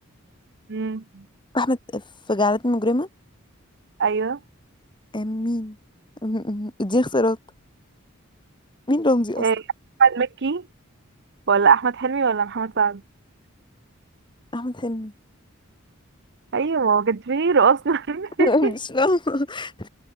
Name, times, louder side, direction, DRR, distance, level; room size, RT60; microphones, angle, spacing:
voice 1, 0.7-1.2 4.0-4.4 9.4-9.6 10.0-10.6 11.5-13.0 16.5-18.7, right 5 dB, 60° right, 0.7 m, -21 dB
voice 2, 1.5-2.0 2.3-3.1 5.1-5.8 6.2-7.4 8.9-9.4 14.5-15.1 18.4-19.9, left 1 dB, 25° left, 2.0 m, -23 dB
head